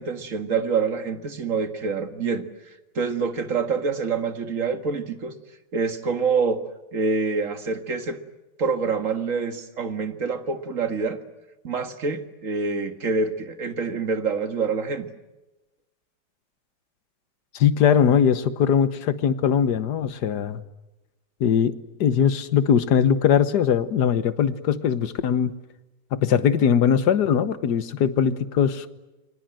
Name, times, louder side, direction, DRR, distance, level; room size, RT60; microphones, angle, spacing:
voice 1, 0.0-2.4 3.0-5.3 5.7-6.6 6.9-8.2 8.6-11.2 11.6-15.1, right 4 dB, 50° right, 8 dB, 2.1 m, -26 dB
voice 2, 17.5-20.6 21.4-25.5 26.1-28.9, left 8 dB, 70° left, 13 dB, 1.7 m, -21 dB
29.0 x 23.5 x 7.7 m, 1.1 s
omnidirectional pair, 1.9 m